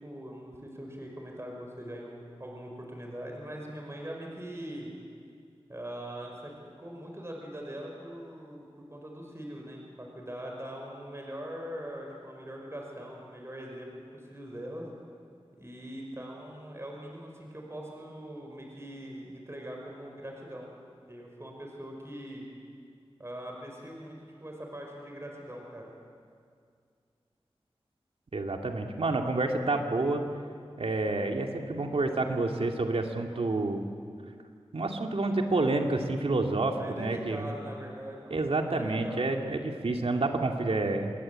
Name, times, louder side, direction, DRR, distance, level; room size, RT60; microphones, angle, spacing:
voice 1, 0.0-4.9 5.7-14.9 15.6-20.7 21.1-22.5 23.2-24.2 24.4-25.9 36.8-39.3, right 1 dB, 25° right, 0 dB, 5.9 m, -42 dB
voice 2, 28.3-30.2 30.8-33.8 34.7-37.5 38.3-41.1, right 2 dB, 80° right, 3 dB, 2.4 m, -29 dB
28.5 x 21.5 x 8.8 m, 2.2 s
wide cardioid pair, 75°, 10 cm